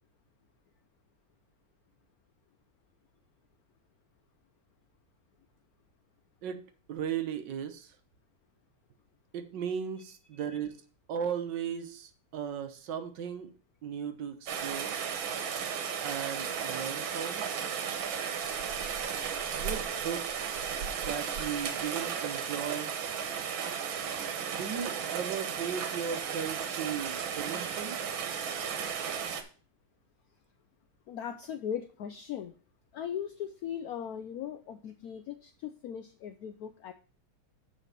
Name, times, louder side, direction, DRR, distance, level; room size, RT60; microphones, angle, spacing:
voice 1, 6.4-8.0 9.3-10.8 11.1-13.5 13.8-14.9 16.0-17.5 19.5-22.9 24.5-28.0, right 8 dB, 70° right, 8 dB, 1.5 m, -37 dB
Rain, 14.5-29.4, right 7 dB, 90° right, 1.7 m, -34 dB
voice 2, 31.1-32.5 32.9-36.9, left 9 dB, 80° left, 9 dB, 0.8 m, -39 dB
6.8 x 5.0 x 6.6 m, 0.39 s
omnidirectional pair, 2.1 m